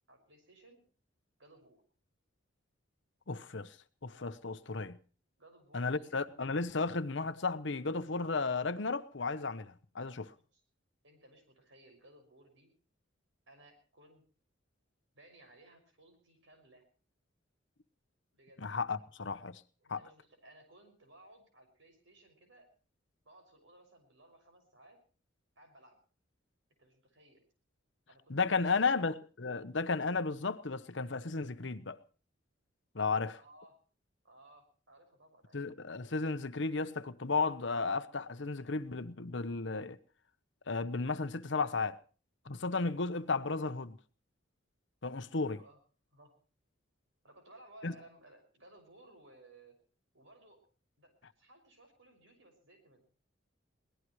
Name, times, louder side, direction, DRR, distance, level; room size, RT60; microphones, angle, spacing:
voice 1, 0.1-0.8 1.4-1.8 5.4-6.1 10.5-10.6 11.0-12.7 13.5-14.2 15.1-16.8 18.3-18.7 19.0-19.1 19.8-22.7 23.2-25.0 25.6-26.0 26.8-27.4 28.1-29.1 33.4-33.8 34.2-35.6 45.5-45.8 46.1-46.4 47.2-49.8 50.1-50.7 51.0-53.0, right 1 dB, 70° right, 6.0 m, -60 dB
voice 2, 3.3-3.7 4.0-5.0 5.7-10.3 18.6-19.6 19.9-20.0 28.3-32.0 32.9-33.4 35.5-40.0 40.7-42.0 42.5-44.0 45.0-45.6 47.8-47.9, left 4 dB, 65° left, 0.9 m, -34 dB
23.0 x 18.0 x 3.1 m
head